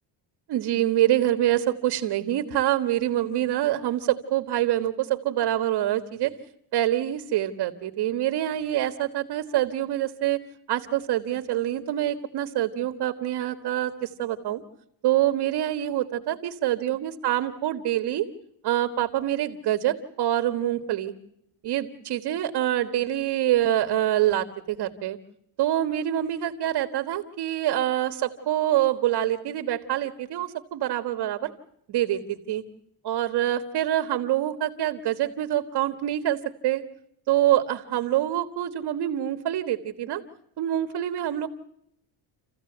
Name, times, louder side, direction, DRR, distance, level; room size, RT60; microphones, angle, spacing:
voice 1, 0.5-6.3 6.7-10.4 10.7-14.6 15.0-18.3 18.6-21.1 21.6-25.2 25.6-31.5 31.9-32.6 33.0-36.8 37.3-40.2 40.6-41.5, right 12 dB, 60° right, 8 dB, 1.6 m, -25 dB
28.5 x 15.5 x 7.9 m, 0.76 s
cardioid pair, 130°, 44 cm